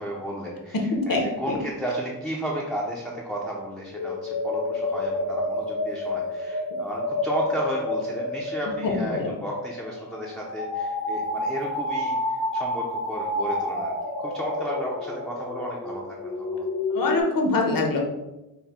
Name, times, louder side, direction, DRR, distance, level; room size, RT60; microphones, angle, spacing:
voice 1, 0.0-12.2 12.5-13.9 14.2-16.7, equal, ahead, -4 dB, 0.5 m, -33 dB
voice 2, 0.9-1.6 8.7-9.3 16.9-18.0, left 3 dB, 65° left, 1 dB, 1.0 m, -24 dB
sound 1, 3.9-17.2, left 2 dB, 80° left, 1.3 m, -29 dB
5.7 x 2.2 x 4.2 m, 0.99 s
wide cardioid pair, 170°, 37 cm